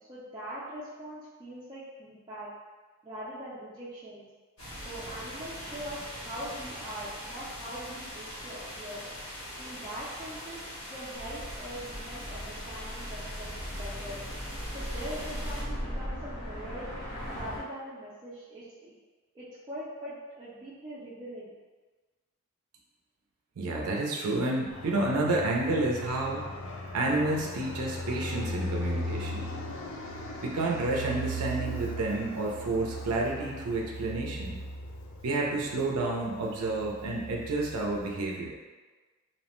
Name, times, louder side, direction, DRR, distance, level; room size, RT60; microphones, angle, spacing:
voice 1, 0.1-2.5 3.0-4.2 4.8-9.1 9.6-14.2 14.7-16.9 17.3-18.9 19.3-21.5, equal, 20° right, -11 dB, 0.4 m, -42 dB
sound 1, 4.6-15.6, equal, 90° left, 1.5 m, -42 dB
sound 2, 11.1-17.6, equal, 40° left, 0.7 m, -38 dB
voice 2, 23.6-26.5 26.9-29.4 30.4-34.6 35.2-38.5, right 2 dB, 80° right, -1 dB, 0.5 m, -30 dB
Fixed-wing aircraft airplane, 24.7-38.2, equal, 60° left, 0.3 m, -38 dB
2.8 x 2.1 x 2.9 m, 1.3 s
head